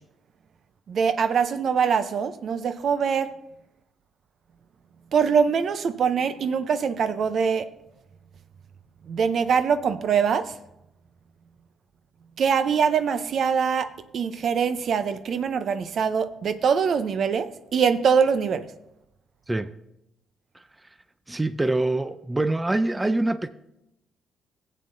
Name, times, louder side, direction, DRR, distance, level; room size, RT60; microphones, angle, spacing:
voice 1, 0.9-3.3 5.1-7.7 9.1-10.6 12.4-18.7, right 6 dB, 60° right, 0.6 m, -23 dB
voice 2, 21.3-23.5, right 2 dB, 15° right, 0.4 m, -25 dB
15.5 x 8.5 x 2.6 m
cardioid pair, 90°, 0 cm